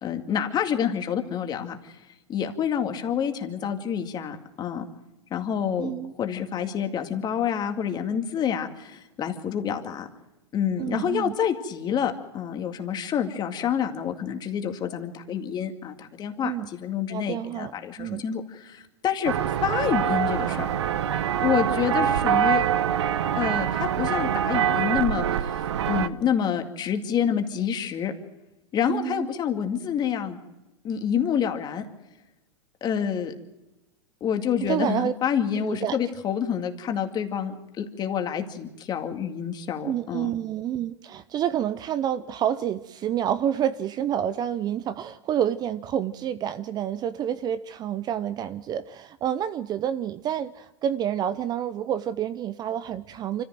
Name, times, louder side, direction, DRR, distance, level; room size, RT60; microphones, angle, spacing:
voice 1, 0.0-2.0 2.3-4.8 5.3-5.9 6.2-10.1 10.5-19.3 19.6-20.7 21.4-22.6 23.4-28.1 28.7-30.4 30.8-31.9 32.8-33.3 34.2-40.3, left 8 dB, 30° left, 6 dB, 2.2 m, -28 dB
voice 2, 5.8-6.1 10.8-11.4 16.4-16.7 17.1-17.7 18.0-18.2 28.9-29.3 34.6-35.1 35.5-36.0 39.8-53.4, right 10 dB, 30° right, 14 dB, 0.7 m, -28 dB
sound 1, 19.2-26.1, right 9 dB, 75° right, 1.0 m, -24 dB
25.5 x 14.5 x 7.7 m, 1.0 s
hypercardioid pair, 120°, 15 cm